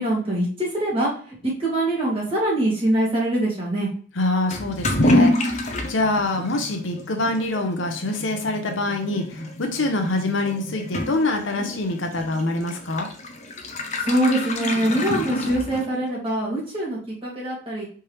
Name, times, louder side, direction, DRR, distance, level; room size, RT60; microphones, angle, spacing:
voice 1, 0.0-1.3 1.6-3.9 14.0-17.8, right 1 dB, 30° right, -5 dB, 2.1 m, -24 dB
voice 2, 4.2-13.1, left 2 dB, 75° left, 3 dB, 0.8 m, -25 dB
Toilet flush / Liquid, 4.5-16.1, left 1 dB, 35° left, 0.6 m, -27 dB
4.4 x 3.6 x 3.1 m, 0.43 s
head